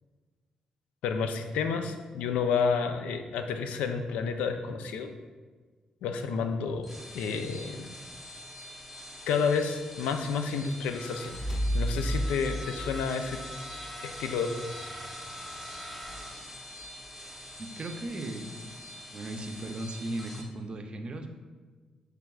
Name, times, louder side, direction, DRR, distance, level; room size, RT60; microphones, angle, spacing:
voice 1, 1.0-5.1 6.0-6.9 7.1-7.9 9.3-13.4 14.0-14.9, left 5 dB, 85° left, 7 dB, 0.3 m, -30 dB
sound 1, 6.7-20.4, equal, 5° right, 0.8 m, -44 dB
sound 2, 11.0-14.2, equal, 20° left, 1.4 m, -33 dB
voice 2, 17.6-18.6 19.1-21.4, right 1 dB, 45° right, 6 dB, 0.5 m, -37 dB
5.9 x 3.3 x 2.3 m, 1.4 s
supercardioid pair, 60°, 2 cm